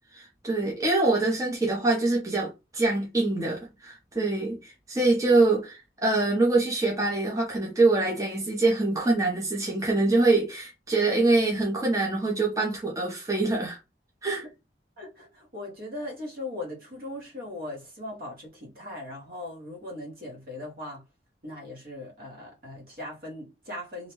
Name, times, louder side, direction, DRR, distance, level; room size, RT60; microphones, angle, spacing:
voice 1, 0.1-13.8 14.2-14.4, right 2 dB, 20° right, 0.6 m, -24 dB
voice 2, 15.0-21.0 21.4-24.1, left 1 dB, 55° right, 0.9 m, -39 dB
2.6 x 2.1 x 3.0 m
head